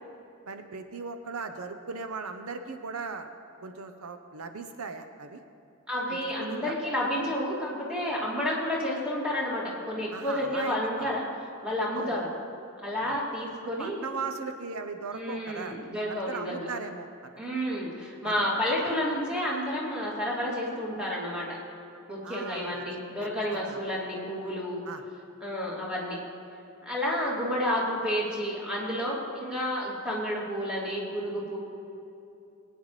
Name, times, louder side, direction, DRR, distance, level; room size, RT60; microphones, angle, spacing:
voice 1, 0.5-3.3 3.6-5.4 6.1-6.7 10.1-11.2 11.9-12.2 13.0-13.2 13.6-15.8 16.1-17.1 18.2-18.4 22.2-23.8 24.9-25.0, right 4 dB, 80° right, 7 dB, 0.7 m, -38 dB
voice 2, 5.9-11.2 11.6-12.3 12.8-14.0 15.1-16.7 17.4-21.6 22.1-24.8 25.4-26.2 26.8-31.6, left 1 dB, 5° right, -6 dB, 2.6 m, -30 dB
21.0 x 9.2 x 3.2 m, 2.7 s
head